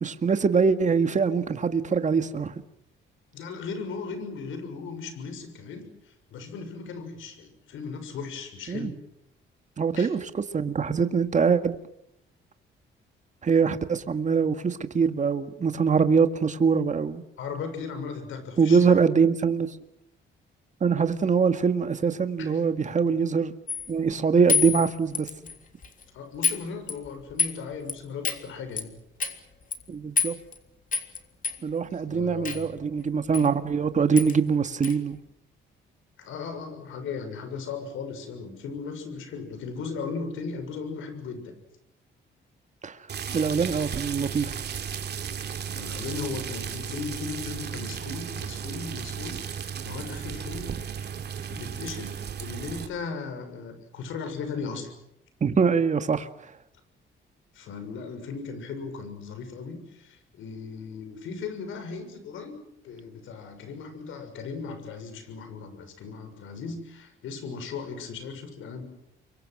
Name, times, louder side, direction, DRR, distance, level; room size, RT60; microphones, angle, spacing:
voice 1, 0.0-2.5 8.7-8.9 9.8-11.8 13.4-17.2 18.6-19.8 20.8-23.5 23.9-25.3 29.9-30.3 31.6-35.2 42.8-43.0 43.3-44.7 55.4-56.3, right 5 dB, 40° right, 1.9 m, -23 dB
voice 2, 3.3-8.9 9.9-10.1 17.4-19.0 22.4-22.6 25.4-25.5 26.1-28.9 31.9-32.7 36.2-41.6 45.7-50.7 51.0-51.1 51.5-54.9 57.5-62.6 62.8-68.8, left 5 dB, 80° left, 6.6 m, -37 dB
sound 1, 23.7-23.9 24.5-25.6 25.8-26.0 26.4-26.6 26.9-27.6 27.9-28.0 28.2-28.4 28.8-28.9 29.2-29.4 29.7-29.8 30.2-30.6 30.9-31.2 31.4-31.6 32.4-32.6 33.3-33.5 33.7-33.8 34.2-34.3 34.8-34.9, left 6 dB, 40° left, 3.5 m, -27 dB
sound 2, 43.1-52.9, right 8 dB, 55° right, 2.9 m, -35 dB
29.5 x 24.0 x 6.2 m
cardioid pair, 90°, 20 cm